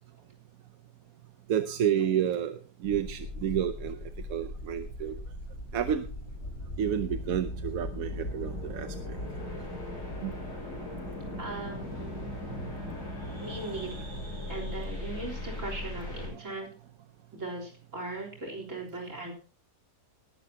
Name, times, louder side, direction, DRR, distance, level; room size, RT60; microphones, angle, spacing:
voice 1, 1.5-4.0 4.3-5.2 5.7-6.0 6.8-9.2 10.2-10.3 19.2-19.3, right 9 dB, 65° right, 10 dB, 1.1 m, -30 dB
sound 1, 2.8-16.3, left 1 dB, 80° left, 6.8 m, -38 dB
voice 2, 11.4-12.3 13.4-14.1 14.5-16.7 17.3-19.3, right 2 dB, 45° right, 2 dB, 4.1 m, -39 dB
19.5 x 11.0 x 2.8 m, 0.39 s
omnidirectional pair, 1.8 m